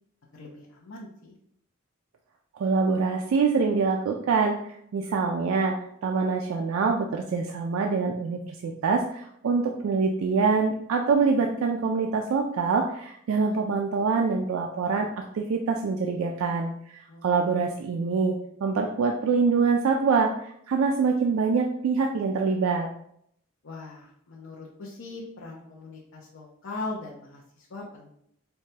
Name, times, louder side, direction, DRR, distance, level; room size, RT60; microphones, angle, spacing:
voice 1, 0.3-1.3 17.1-17.4 23.6-28.1, left 2 dB, 75° left, -4 dB, 0.6 m, -40 dB
voice 2, 2.5-4.6 4.9-5.8 6.0-16.7 17.2-22.9, right 4 dB, 85° right, 2 dB, 0.3 m, -25 dB
4.6 x 2.2 x 2.8 m, 0.70 s
head